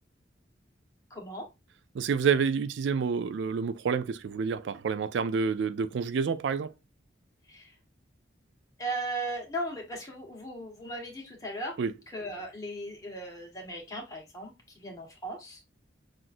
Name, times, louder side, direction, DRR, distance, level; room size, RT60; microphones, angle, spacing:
voice 1, 1.1-1.4 7.5-7.7 8.8-11.7 12.1-15.6, right 1 dB, 20° left, 1.3 m, -37 dB
voice 2, 1.9-6.7 11.8-11.9, right 6 dB, 70° right, 0.3 m, -28 dB
5.9 x 2.5 x 2.5 m
head